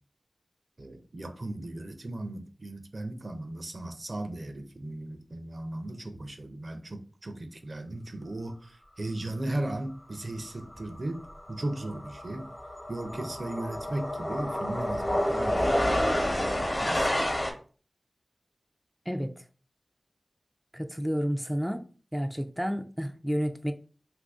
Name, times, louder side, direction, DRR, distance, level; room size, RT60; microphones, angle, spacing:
voice 1, 0.8-11.2 11.5-12.5 12.9-15.8 16.1-17.3, right 1 dB, 55° right, 0.5 m, -37 dB
sound 1, 10.7-10.9 11.2-17.5, left 1 dB, 30° left, 0.8 m, -29 dB
voice 2, 19.1-19.4 20.7-21.8 22.1-23.7, equal, 5° right, 0.3 m, -30 dB
2.7 x 2.6 x 3.5 m
wide cardioid pair, 45°, 0 cm